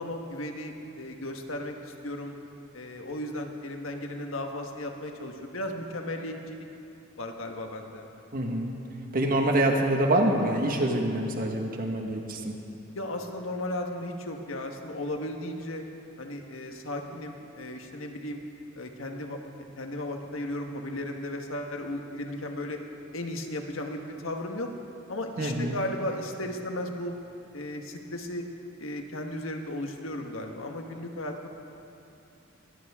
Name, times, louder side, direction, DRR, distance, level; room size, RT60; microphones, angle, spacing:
voice 1, 0.0-2.4 2.7-6.7 7.2-8.1 12.9-15.8 16.2-18.4 18.7-19.4 19.8-22.8 23.1-24.7 25.1-27.1 27.5-28.4 28.8-31.5, left 1 dB, 90° left, 3 dB, 1.5 m, -35 dB
voice 2, 8.3-8.7 9.1-12.5 25.4-25.7, right 1 dB, 45° right, 2 dB, 1.6 m, -26 dB
22.0 x 16.0 x 3.7 m, 2.8 s
head